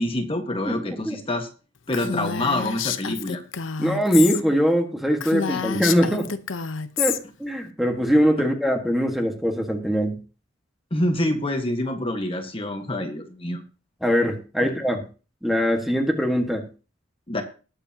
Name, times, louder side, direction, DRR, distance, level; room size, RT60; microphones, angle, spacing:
voice 1, 0.0-1.5 1.9-3.4 5.5-5.6 8.4-8.5 10.9-13.6 14.6-14.7 17.3-17.4, left 1 dB, 30° left, 4 dB, 1.5 m, -26 dB
voice 2, 0.6-1.2 3.8-6.3 7.0-10.2 14.0-15.0 15.4-16.6, equal, ahead, 3 dB, 1.6 m, -22 dB
Female speech woman speaking, 1.9-4.4 4.7-4.8 5.2-7.2, left 7 dB, 85° left, 0.8 m, -28 dB
20.0 x 8.1 x 2.9 m, 0.35 s
head